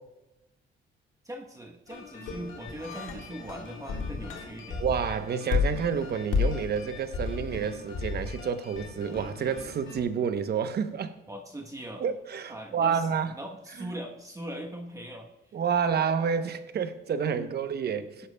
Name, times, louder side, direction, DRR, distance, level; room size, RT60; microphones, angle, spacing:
voice 1, 1.2-4.8 11.3-12.0 12.5-15.3 17.4-17.6, right 1 dB, 15° right, 1.0 m, -40 dB
sound 1, 1.9-10.0, left 5 dB, 80° left, 1.7 m, -33 dB
voice 2, 4.8-11.2 12.0-13.3 15.5-18.3, right 7 dB, 55° right, 0.8 m, -29 dB
15.5 x 11.5 x 2.2 m
cardioid pair, 90°, 20 cm